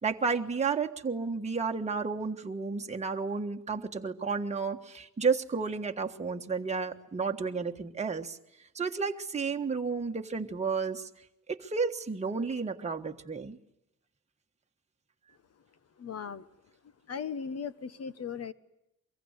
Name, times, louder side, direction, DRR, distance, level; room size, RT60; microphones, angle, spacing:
voice 1, 0.0-8.4 8.7-11.1 11.5-13.6, right 5 dB, 20° right, 3 dB, 1.5 m, -32 dB
voice 2, 16.0-16.5 17.1-18.5, left 6 dB, 50° left, 14 dB, 1.4 m, -37 dB
24.0 x 22.5 x 9.8 m, 0.83 s
wide cardioid pair, 155°, 31 cm